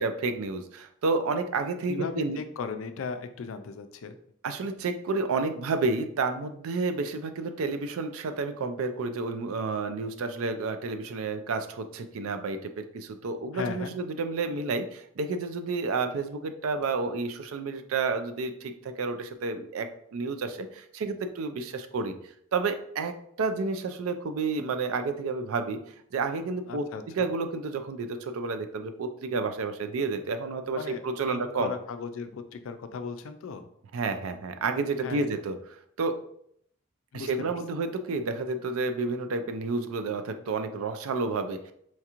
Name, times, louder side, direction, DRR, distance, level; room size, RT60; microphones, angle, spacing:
voice 1, 0.0-2.4 4.4-22.1 22.5-25.8 26.1-26.9 27.2-31.7 33.9-35.6 36.0-36.2 37.1-41.7, right 3 dB, 80° right, 8 dB, 0.4 m, -30 dB
voice 2, 1.9-4.2 13.5-14.0 26.7-27.3 30.8-33.7 35.0-35.3 37.1-37.5, left 5 dB, 70° left, 9 dB, 0.4 m, -37 dB
4.3 x 2.4 x 2.9 m, 0.70 s
head